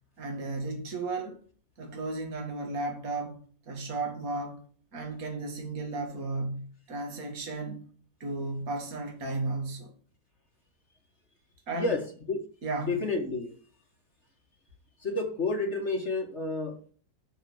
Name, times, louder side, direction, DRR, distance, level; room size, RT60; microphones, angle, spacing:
voice 1, 0.2-1.4 1.8-3.4 3.7-4.6 4.9-7.9 8.2-9.9 11.7-11.9 12.6-13.0, right 3 dB, 55° right, 2.4 m, -34 dB
voice 2, 12.8-13.5 15.0-16.9, left 3 dB, 40° left, 1.7 m, -30 dB
12.0 x 4.6 x 7.0 m
omnidirectional pair, 1.9 m